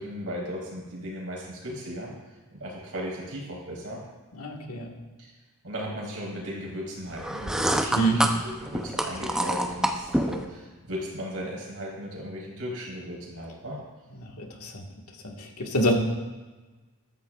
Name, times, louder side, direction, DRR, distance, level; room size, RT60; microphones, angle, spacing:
voice 1, 0.0-2.1 2.5-4.0 5.2-5.3 5.6-8.4 8.6-13.8, equal, 75° right, -4 dB, 4.0 m, -36 dB
voice 2, 4.3-4.9 7.9-8.2 14.2-14.8 15.2-15.9, right 1 dB, 80° left, 1 dB, 1.7 m, -27 dB
sound 1, 7.2-10.4, right 1 dB, 5° right, 0.6 m, -27 dB
14.5 x 13.0 x 2.4 m, 1.3 s
head